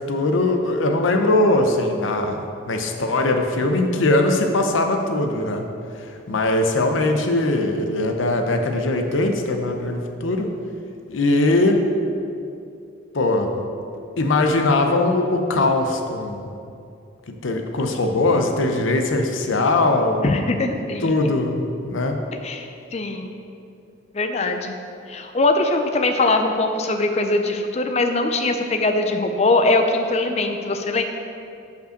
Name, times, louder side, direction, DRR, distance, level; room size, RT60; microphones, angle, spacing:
voice 1, 0.1-2.4 2.7-5.6 6.3-10.5 11.1-11.8 13.1-13.6 14.2-16.5 17.3-20.4 21.0-22.1, left 2 dB, 80° left, 4 dB, 0.7 m, -20 dB
voice 2, 20.2-21.1 22.4-23.3 24.1-24.8 25.1-31.0, left 2 dB, 35° left, 6 dB, 0.4 m, -21 dB
5.2 x 5.2 x 6.4 m, 2.6 s
head